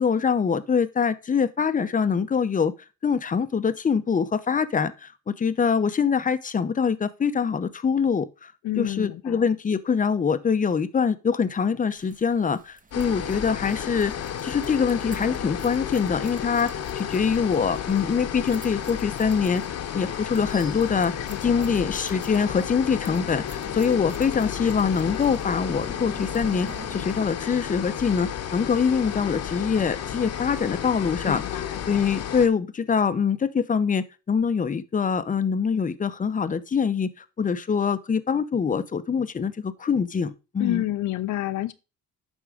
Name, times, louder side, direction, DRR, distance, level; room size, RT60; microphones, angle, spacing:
voice 1, 0.0-2.7 3.0-8.5 8.8-14.1 14.4-19.6 19.9-21.1 21.4-31.4 31.9-40.8, left 6 dB, 25° left, 0.7 m, -24 dB
voice 2, 8.6-9.5 21.2-21.8 31.2-31.8 40.6-41.7, left 14 dB, 75° left, 0.6 m, -29 dB
sound 1, 11.9-27.4, right 3 dB, 25° right, 1.1 m, -48 dB
sound 2, 12.9-32.5, left 9 dB, 55° left, 1.0 m, -32 dB
10.0 x 3.6 x 4.9 m
cardioid pair, 90°, 30 cm